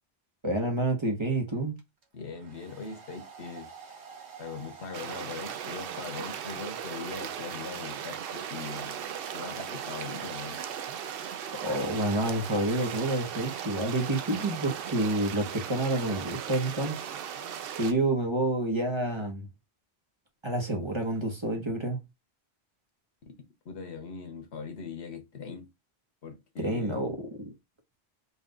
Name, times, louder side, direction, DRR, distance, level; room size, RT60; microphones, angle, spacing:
voice 1, 0.4-1.7 11.6-16.9 17.8-19.5 20.4-22.0 26.6-27.3, right 2 dB, 30° right, 0.9 m, -28 dB
Domestic sounds home sounds, 1.8-15.5, right 6 dB, 85° right, 1.3 m, -47 dB
voice 2, 2.1-3.7 4.4-9.0 9.3-10.6 23.6-25.7 26.2-27.1, left 5 dB, 85° left, 1.3 m, -41 dB
sound 1, 4.9-17.9, right 8 dB, 65° right, 0.7 m, -38 dB
4.1 x 2.3 x 3.7 m
omnidirectional pair, 1.1 m